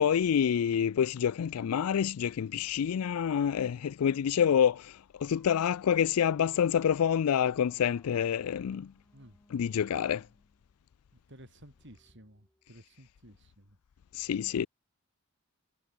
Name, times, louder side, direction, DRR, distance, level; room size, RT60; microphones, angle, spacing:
voice 1, 0.0-4.9 5.2-8.9 9.5-10.2 14.2-14.7, left 8 dB, 80° left, 0.4 m, -27 dB
sound 1, 6.9-13.1, left 1 dB, 10° left, 7.4 m, -68 dB
voice 2, 11.3-13.8, right 1 dB, 55° right, 7.9 m, -54 dB
head